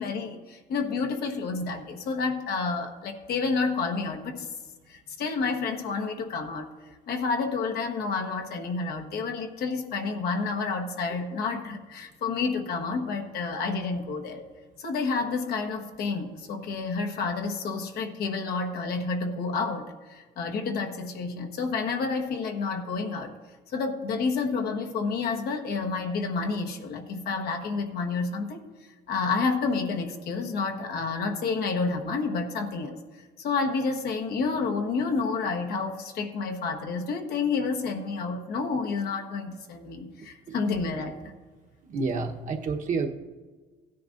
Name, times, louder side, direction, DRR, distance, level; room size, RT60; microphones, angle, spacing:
voice 1, 0.0-4.5 4.9-6.7 7.1-14.5 14.8-23.3 23.7-28.6 29.1-33.0 33.4-41.1, left 4 dB, 70° left, 4 dB, 1.3 m, -29 dB
voice 2, 41.9-43.1, right 4 dB, 50° right, 2 dB, 1.1 m, -29 dB
16.0 x 10.0 x 2.6 m, 1.4 s
cardioid pair, 110°, 17 cm